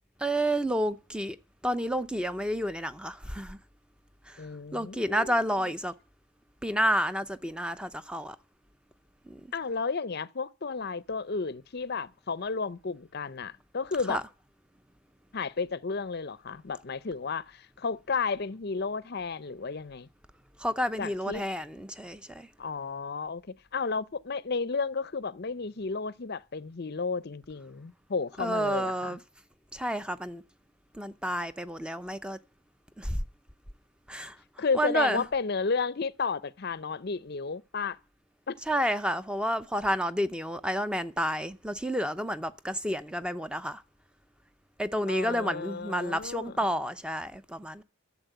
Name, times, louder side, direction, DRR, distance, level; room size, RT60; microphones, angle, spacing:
voice 1, 0.2-1.4 1.6-3.6 4.3-4.5 4.7-5.9 6.6-8.4 9.3-9.4 14.1-14.2 20.6-22.5 28.4-29.2 29.7-30.4 30.9-32.4 33.0-33.2 34.1-34.4 34.7-35.2 38.7-43.8 44.8-47.8, equal, 5° right, 0.6 m, -30 dB
voice 2, 4.4-5.7 9.5-14.2 15.3-20.1 21.0-21.4 22.6-29.2 34.6-38.0 38.5-38.6 45.1-46.7, left 4 dB, 45° left, 0.6 m, -33 dB
13.0 x 7.4 x 9.0 m
head